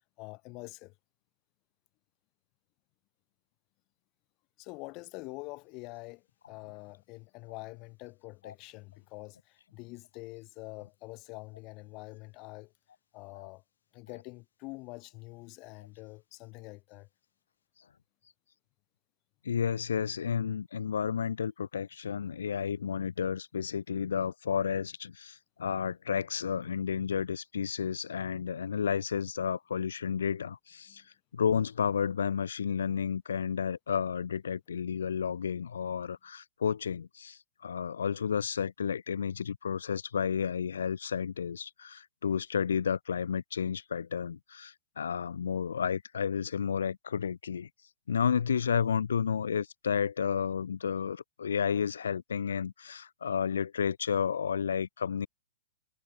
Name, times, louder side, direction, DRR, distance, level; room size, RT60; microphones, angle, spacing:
voice 1, 0.2-0.9 4.6-12.7 13.1-13.6 13.9-17.1 30.9-31.0, left 25 dB, 35° left, 4.2 m, -46 dB
voice 2, 19.4-31.0 31.3-47.7 48.1-55.3, left 7 dB, 75° left, 0.8 m, -32 dB
hypercardioid pair, 115°, 0 cm